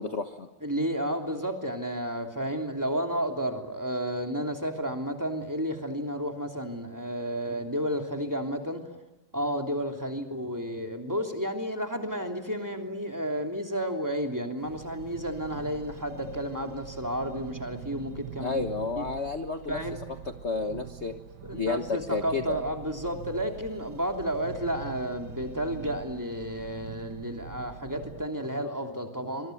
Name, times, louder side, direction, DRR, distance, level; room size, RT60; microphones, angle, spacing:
voice 1, 0.0-0.5 18.4-19.8 20.4-21.1 21.5-22.6, left 4 dB, 40° left, 6 dB, 1.5 m, -31 dB
voice 2, 0.6-9.0 9.3-18.6 19.0-19.1 19.7-20.0 21.4-29.5, equal, 10° right, 3 dB, 3.0 m, -32 dB
sound 1, 14.6-28.3, right 9 dB, 60° right, 1.6 m, -44 dB
26.0 x 22.5 x 9.3 m, 1.1 s
omnidirectional pair, 2.1 m